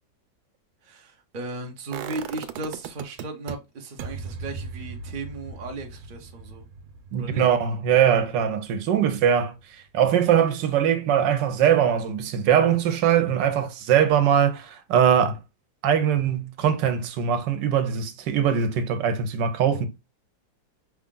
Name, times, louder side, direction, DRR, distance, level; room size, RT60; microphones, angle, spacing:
voice 1, 0.8-6.6 7.1-7.4, right 2 dB, 55° right, 0.5 m, -36 dB
sound 1, 1.9-3.5 4.0-9.8 10.1-10.2, right 6 dB, 90° right, 1.4 m, -39 dB
voice 2, 7.1-9.5 9.9-15.4 15.8-19.9, right 8 dB, 70° right, 1.3 m, -21 dB
5.5 x 2.4 x 3.7 m
omnidirectional pair, 2.1 m